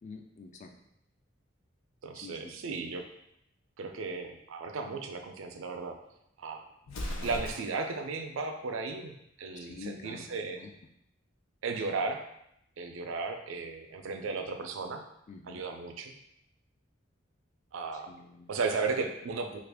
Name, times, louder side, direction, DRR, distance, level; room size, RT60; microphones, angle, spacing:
voice 1, 0.0-0.7 2.2-2.5 9.5-10.3 10.6-10.7 15.3-15.6 17.9-18.5, left 4 dB, 35° left, 4 dB, 0.4 m, -47 dB
voice 2, 2.0-3.0 3.8-6.0 6.4-6.6 7.2-10.6 11.6-12.2 12.8-15.0 15.5-16.2 17.7-18.1 18.5-19.6, right 4 dB, 80° right, 5 dB, 0.4 m, -35 dB
Explosion, 6.8-8.0, equal, 90° left, 0.5 m, -38 dB
3.2 x 2.4 x 3.4 m, 0.77 s
head